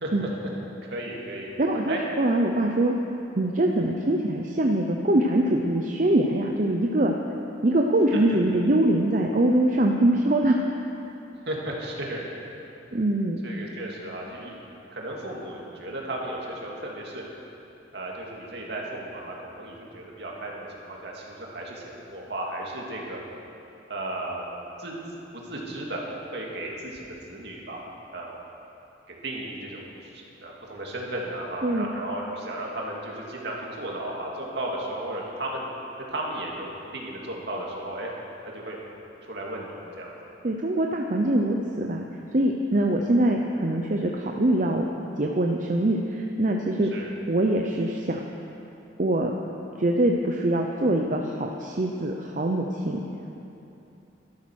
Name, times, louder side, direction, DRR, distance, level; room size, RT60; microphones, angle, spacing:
voice 1, 0.9-1.5 1.9-2.0 11.5-12.2 13.4-14.5 14.9-17.2 17.9-23.2 23.9-24.5 24.8-25.0 25.3-26.0 26.3-28.4 29.2-35.7 36.1-38.1 38.5-38.8 39.2-40.2 46.9-47.1, right 1 dB, 65° right, -2 dB, 2.3 m, -34 dB
voice 2, 1.6-2.9 3.3-7.1 7.6-10.6 12.9-13.4 31.6-31.9 40.4-42.0 42.3-44.9 45.2-46.9 47.3-48.2 49.0-49.3 49.8-53.0, right 1 dB, 45° right, 1 dB, 0.7 m, -23 dB
12.5 x 12.0 x 6.4 m, 2.9 s
head